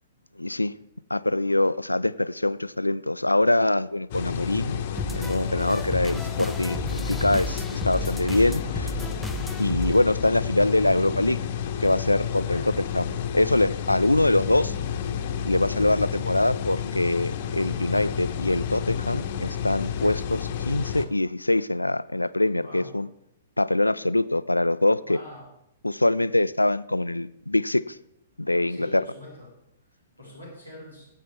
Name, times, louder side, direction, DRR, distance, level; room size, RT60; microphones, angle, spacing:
voice 1, 0.4-0.7 1.1-4.8 5.1-8.9 9.6-11.4 11.8-14.7 15.4-23.1 23.6-25.2 25.8-28.0 28.4-29.0, left 2 dB, 85° left, 17 dB, 0.3 m, -24 dB
sound 1, 4.1-21.1, left 8 dB, 45° left, 0.9 m, -31 dB
sound 2, 5.0-10.0, right 2 dB, ahead, 0.4 m, -34 dB
voice 2, 22.6-22.9 25.0-25.5 28.7-29.5 30.2-31.0, left 2 dB, 85° right, -5 dB, 4.8 m, -42 dB
16.0 x 8.4 x 3.5 m, 0.81 s
figure-of-eight pair, 110°, 0 cm